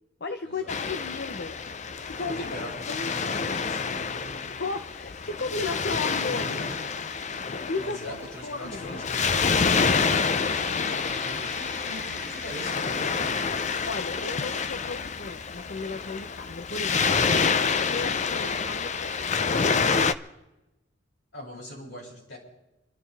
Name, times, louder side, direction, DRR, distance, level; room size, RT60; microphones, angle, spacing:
voice 1, 0.2-1.6 2.1-2.5 2.9-3.1 4.6-6.4 7.7-8.0 8.4-9.0 13.9-20.1, left 3 dB, 60° left, 8 dB, 0.9 m, -35 dB
Waves surf, 0.7-20.1, left 5 dB, 40° left, 0.6 m, -28 dB
voice 2, 2.3-4.5 6.3-6.8 7.8-13.4 21.3-22.4, equal, 75° left, -5 dB, 7.8 m, -41 dB
sound 1, 7.5-14.3, right 1 dB, 10° left, 2.2 m, -46 dB
29.0 x 12.5 x 3.5 m, 0.97 s
head